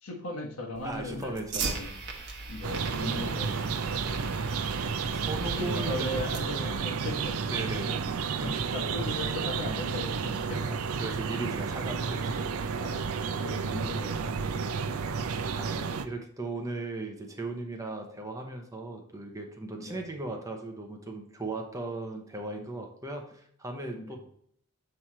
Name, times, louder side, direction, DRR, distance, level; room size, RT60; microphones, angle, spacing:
voice 1, 0.0-1.9 2.5-4.6 5.5-7.4 8.4-10.8 12.8-14.9 15.6-15.8 19.8-20.1 23.9-24.2, left 2 dB, 75° left, 1 dB, 1.4 m, -38 dB
Fire, 0.7-6.7, right 3 dB, 50° right, 1.1 m, -39 dB
voice 2, 0.8-1.9 5.1-6.1 7.5-8.0 8.4-8.7 11.0-12.5 15.4-24.2, right 2 dB, 15° right, 3 dB, 0.8 m, -37 dB
sound 1, 2.6-16.1, right 5 dB, 70° right, 0.5 m, -31 dB
7.3 x 3.2 x 4.2 m, 0.67 s
head